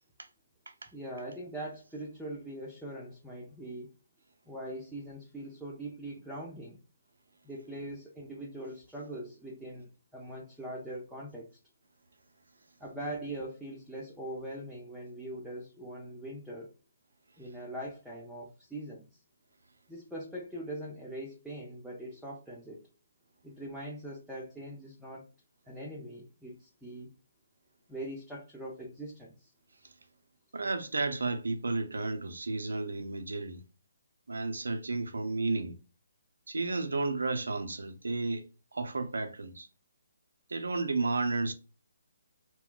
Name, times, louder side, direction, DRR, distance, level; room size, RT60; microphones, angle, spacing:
voice 1, 0.9-3.9 4.5-6.8 7.4-11.5 12.8-16.7 17.4-19.1 19.9-22.9 23.4-25.3 25.7-27.1 27.9-29.5, right 1 dB, ahead, 0.6 m, -42 dB
voice 2, 30.5-33.6 34.3-35.7 36.5-38.4 38.7-39.7 40.5-41.5, right 3 dB, 75° right, 0.5 m, -32 dB
2.2 x 2.1 x 3.8 m
figure-of-eight pair, 140°, 0 cm